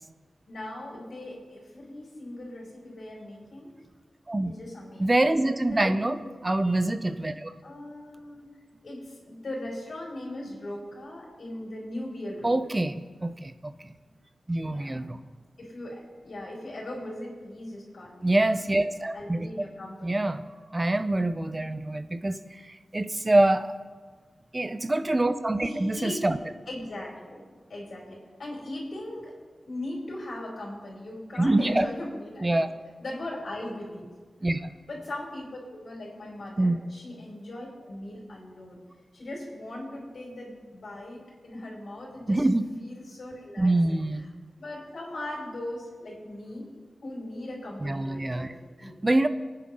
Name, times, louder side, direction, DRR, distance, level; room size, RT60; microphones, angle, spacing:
voice 1, 0.5-3.7 4.4-5.2 5.7-6.2 6.5-6.6 7.6-8.5 8.8-12.6 14.7-15.1 15.6-18.4 19.1-20.2 25.6-26.2 26.7-29.3 29.7-32.7 33.0-34.1 34.9-38.8 39.1-42.5 42.8-44.0 44.6-46.7 47.0-48.9, left 1 dB, 60° left, -3 dB, 5.5 m, -39 dB
voice 2, 5.0-7.5 12.4-13.9 14.5-15.2 18.2-19.5 20.0-20.4 20.7-23.7 24.5-26.4 31.4-31.9 32.4-32.7 34.4-34.7 36.6-36.8 42.3-42.6 43.6-44.2 47.8-48.5 48.8-49.3, right 2 dB, 20° right, 10 dB, 0.8 m, -25 dB
27.0 x 10.0 x 3.8 m, 1.5 s
wide cardioid pair, 140°, 0 cm